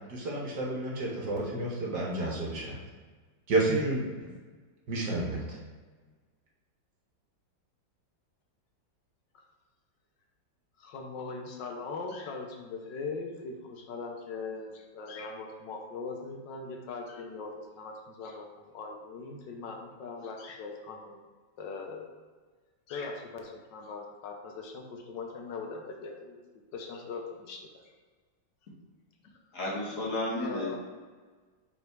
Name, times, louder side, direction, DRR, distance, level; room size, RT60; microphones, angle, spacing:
voice 1, 0.1-2.7 3.5-4.0 4.9-5.6, right 2 dB, 60° right, -3 dB, 1.7 m, -30 dB
voice 2, 10.8-21.2 21.6-22.1 22.9-26.4 26.7-27.7 30.4-30.8, left 4 dB, 70° left, 2 dB, 1.5 m, -40 dB
voice 3, 29.5-30.8, left 2 dB, 45° left, -5 dB, 1.8 m, -32 dB
5.5 x 4.2 x 4.6 m, 1.4 s
omnidirectional pair, 2.1 m